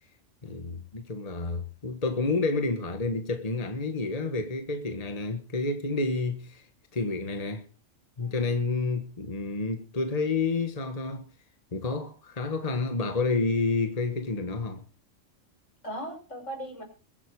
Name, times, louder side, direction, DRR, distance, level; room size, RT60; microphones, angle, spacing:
voice 1, 0.4-6.7 6.9-7.6 8.2-11.3 11.7-14.8, left 3 dB, 30° left, 1.5 m, -29 dB
voice 2, 8.2-8.6 15.8-16.8, equal, 75° left, 5.9 m, -38 dB
22.5 x 8.2 x 4.7 m
omnidirectional pair, 1.3 m